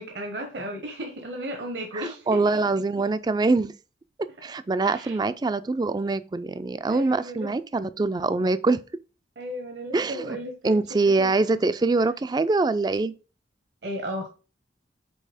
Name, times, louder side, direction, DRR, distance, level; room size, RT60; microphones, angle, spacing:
voice 1, 0.0-2.4 4.8-5.2 6.9-7.5 9.4-11.6 13.8-14.3, equal, 70° right, 1.0 m, -35 dB
voice 2, 1.9-3.7 4.4-8.8 9.9-10.4 10.6-13.1, right 3 dB, 25° right, 0.3 m, -24 dB
5.4 x 4.1 x 4.9 m
head